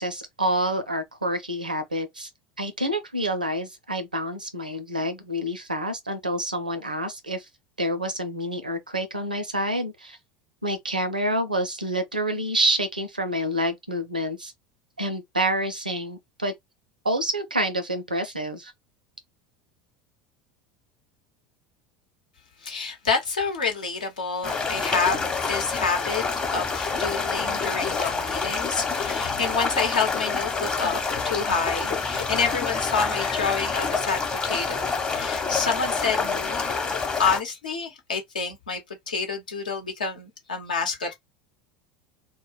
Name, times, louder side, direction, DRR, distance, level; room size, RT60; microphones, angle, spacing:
voice 1, 0.0-2.3 2.6-7.5 7.8-10.2 10.6-14.5 15.0-16.5 17.0-18.7, right 1 dB, 90° right, 0.5 m, -28 dB
voice 2, 22.6-26.2 26.5-36.6 36.9-38.8 39.1-41.1, left 5 dB, 75° left, 0.9 m, -28 dB
sound 1, 24.4-37.4, left 4 dB, 20° left, 0.8 m, -27 dB
2.2 x 2.1 x 3.1 m
figure-of-eight pair, 75°, 4 cm